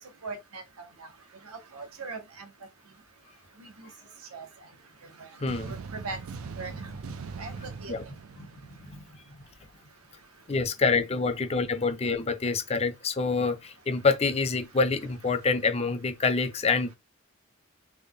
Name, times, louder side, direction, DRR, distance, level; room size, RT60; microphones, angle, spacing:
voice 1, 0.2-0.9 1.7-2.5 3.6-3.9 4.3-4.5 5.2-5.3 5.6-6.2 6.6-6.7 7.4-7.5 7.8-7.9, right 3 dB, 85° right, 0.9 m, -39 dB
voice 2, 5.4-5.8 6.6-6.8 7.9-8.0 8.4-9.0 10.5-16.9, left 4 dB, 30° left, 0.4 m, -27 dB
sound 1, 5.5-9.4, right 5 dB, 65° right, 0.3 m, -41 dB
3.3 x 2.2 x 3.5 m
head